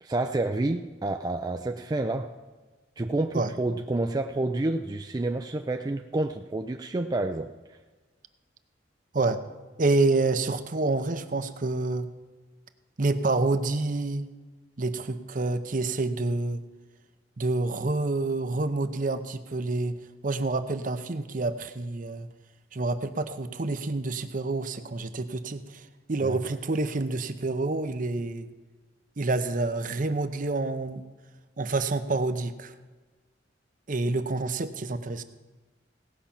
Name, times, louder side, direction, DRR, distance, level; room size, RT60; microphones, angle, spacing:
voice 1, 0.0-2.3 3.0-7.5 26.2-26.4, right 2 dB, 20° right, 5 dB, 0.4 m, -29 dB
voice 2, 9.8-12.1 13.0-14.3 14.8-16.6 17.4-20.0 20.2-22.3 22.7-28.5 29.2-31.0 31.6-32.7 33.9-35.2, right 3 dB, 45° right, 10 dB, 0.7 m, -28 dB
17.5 x 5.8 x 7.1 m, 1.3 s
head